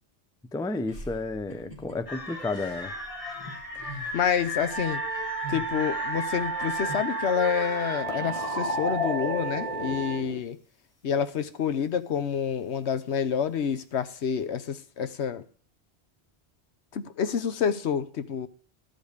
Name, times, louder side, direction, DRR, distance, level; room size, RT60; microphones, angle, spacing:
voice 1, 0.5-2.9, left 2 dB, 5° left, 0.3 m, -32 dB
sound 1, 0.9-7.0, right 1 dB, 35° right, 2.2 m, -44 dB
sound 2, 2.1-10.4, left 2 dB, 30° left, 1.5 m, -34 dB
voice 2, 4.1-5.0 5.5-10.6 11.0-15.4 16.9-18.5, left 7 dB, 75° left, 1.1 m, -28 dB
Wind instrument woodwind instrument, 4.7-10.2, right 6 dB, 65° right, 1.1 m, -34 dB
13.5 x 5.3 x 6.5 m
omnidirectional pair, 1.1 m